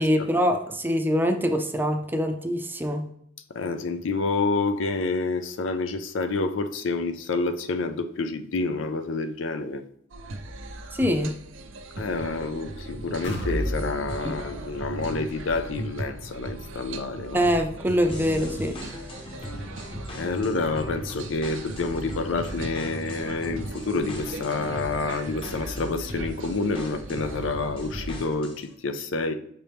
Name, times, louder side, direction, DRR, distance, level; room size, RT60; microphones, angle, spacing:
voice 1, 0.0-3.0 10.9-11.3 14.2-14.4 17.3-18.8, equal, 10° right, 0.5 m, -24 dB
voice 2, 3.6-9.8 12.0-17.5 20.1-29.3, left 3 dB, 85° left, 0.5 m, -28 dB
sound 1, 10.1-28.3, right 2 dB, 85° right, 0.6 m, -38 dB
sound 2, 13.2-21.0 21.4-21.5 22.0-22.1, equal, 65° left, 1.2 m, -37 dB
sound 3, 18.1-28.7, left 1 dB, 30° left, 0.9 m, -40 dB
6.3 x 4.4 x 3.4 m
head